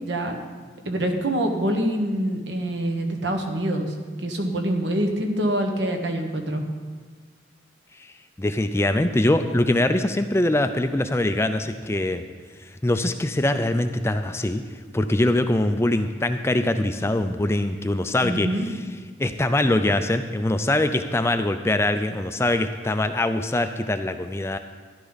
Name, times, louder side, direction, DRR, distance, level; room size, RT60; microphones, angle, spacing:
voice 1, 0.0-0.4 0.8-6.6 18.2-18.7, right 1 dB, 70° right, 3 dB, 1.4 m, -25 dB
voice 2, 8.4-12.3 12.6-14.6 14.9-18.8 19.2-24.6, left 1 dB, 15° left, 8 dB, 0.4 m, -23 dB
13.5 x 11.0 x 4.1 m, 1.5 s
head